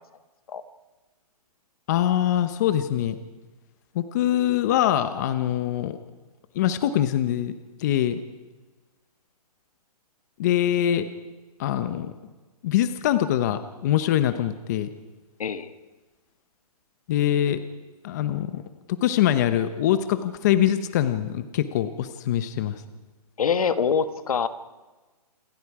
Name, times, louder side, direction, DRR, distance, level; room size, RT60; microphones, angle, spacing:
voice 1, 1.9-3.2 3.9-6.0 6.5-7.5 7.8-8.2 10.4-11.0 11.6-12.1 12.6-14.9 17.1-17.6 18.0-18.6 18.9-22.7, left 11 dB, 25° left, 11 dB, 0.9 m, -23 dB
voice 2, 15.4-15.7 23.4-24.5, left 6 dB, 65° left, 11 dB, 1.6 m, -24 dB
28.0 x 24.5 x 4.9 m, 1.2 s
hypercardioid pair, 165°, 20 cm